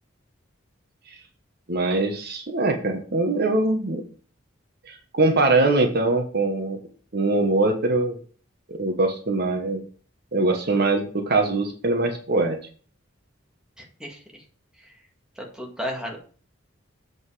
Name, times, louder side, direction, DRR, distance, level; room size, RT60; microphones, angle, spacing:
voice 1, 1.7-4.0 4.9-6.8 7.1-8.2 8.7-9.8 10.3-12.6, right 2 dB, 50° right, 4 dB, 1.2 m, -22 dB
voice 2, 13.8-14.4 14.8-14.9 15.4-16.2, equal, 5° right, -1 dB, 2.0 m, -34 dB
8.0 x 5.3 x 4.9 m, 0.41 s
head